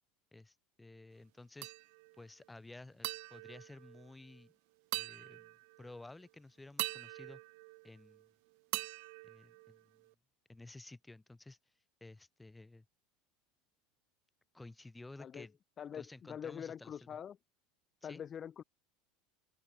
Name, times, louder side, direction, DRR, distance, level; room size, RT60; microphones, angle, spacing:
voice 1, 0.3-1.7 2.2-4.5 4.9-7.4 7.8-8.3 9.2-10.0 10.5-11.6 12.0-12.8 14.5-15.5 15.9-17.2 18.0-18.2, left 2 dB, 10° left, 3.3 m, -54 dB
sound 1, 1.6-2.2 3.0-4.5 4.9-5.9 6.8-8.3 8.7-10.1, right 30 dB, 65° right, 0.3 m, -43 dB
voice 2, 15.8-17.4 18.0-18.6, left 8 dB, 35° left, 0.5 m, -44 dB
open air
hypercardioid pair, 80°, 0 cm